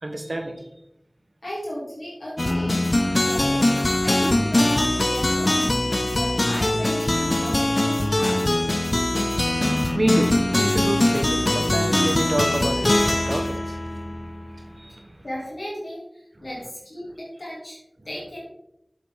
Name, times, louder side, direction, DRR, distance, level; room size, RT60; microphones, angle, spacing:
voice 1, 0.0-0.7 4.2-4.3 9.5-15.2, right 1 dB, 65° right, 5 dB, 1.3 m, -28 dB
voice 2, 1.4-2.8 3.2-3.7 4.0-8.4 15.2-17.8 18.0-18.4, equal, 80° left, -6 dB, 2.9 m, -35 dB
sound 1, 2.4-14.7, left 1 dB, 50° left, 0.6 m, -22 dB
8.3 x 7.0 x 3.7 m, 0.81 s
wide cardioid pair, 45°, 0 cm